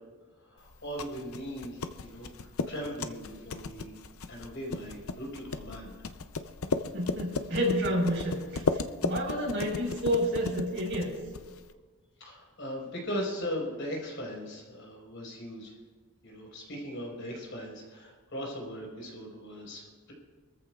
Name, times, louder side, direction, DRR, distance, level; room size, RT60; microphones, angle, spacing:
voice 1, 0.4-3.9 4.3-6.0 12.2-15.7 16.2-20.1, equal, 55° left, -2 dB, 5.1 m, -39 dB
sound 1, 0.7-11.7, left 4 dB, 70° left, 0.6 m, -36 dB
voice 2, 6.9-8.6 9.0-11.1, equal, 55° right, -2 dB, 4.9 m, -29 dB
25.0 x 14.0 x 2.5 m, 1.4 s
head